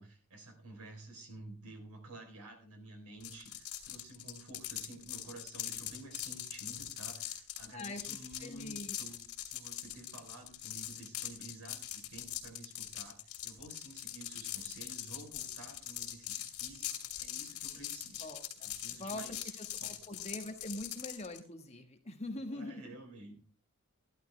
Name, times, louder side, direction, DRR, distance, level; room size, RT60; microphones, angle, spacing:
voice 1, 0.0-9.2 9.5-18.3 18.6-19.5 19.8-19.9 22.5-23.3, right 2 dB, 80° right, 4 dB, 3.9 m, -51 dB
sound 1, 3.2-21.4, left 12 dB, 75° left, 2.7 m, -42 dB
voice 2, 8.4-8.9 18.2-18.7 19.0-19.2 19.6-19.7 20.1-22.8, left 1 dB, 30° left, 5 dB, 1.5 m, -43 dB
13.5 x 11.5 x 3.3 m, 0.40 s
head